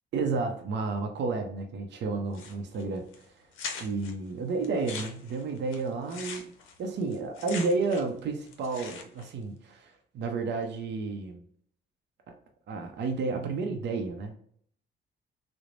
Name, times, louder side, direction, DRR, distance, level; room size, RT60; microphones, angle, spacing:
voice 1, 0.1-3.4 3.8-6.5 6.8-11.4 12.7-14.3, right 4 dB, 60° right, 4 dB, 0.5 m, -31 dB
sound 1, 2.3-2.8 3.1-3.2 3.5-4.1 4.6-8.2 8.5-9.3, left 5 dB, 85° left, 0.5 m, -41 dB
3.1 x 2.0 x 2.4 m, 0.62 s
cardioid pair, 90°, 20 cm